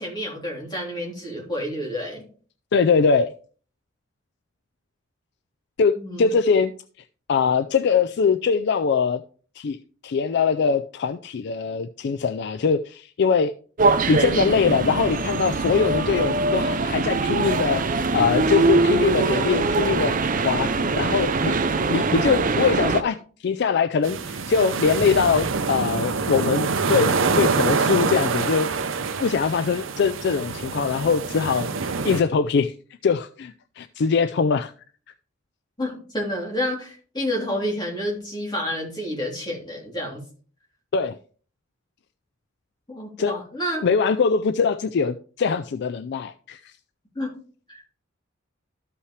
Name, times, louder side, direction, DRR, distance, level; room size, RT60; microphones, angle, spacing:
voice 1, 0.0-2.2 6.0-6.3 35.8-40.2 42.9-43.8 47.1-47.3 47.7-47.8, equal, 20° left, 3.3 m, -29 dB
voice 2, 2.7-3.3 5.8-6.7 7.3-9.2 9.6-9.8 10.0-13.5 14.1-20.2 20.4-21.6 21.9-23.2 23.4-28.7 29.2-31.7 32.0-32.7 33.0-34.7 40.9-41.2 43.2-43.3 43.8-46.7, left 5 dB, 55° left, 0.4 m, -22 dB
sound 1, 13.8-23.0, right 3 dB, 40° right, 0.6 m, -22 dB
sound 2, 24.0-32.2, right 4 dB, 75° right, 0.7 m, -25 dB
13.0 x 5.6 x 3.2 m
head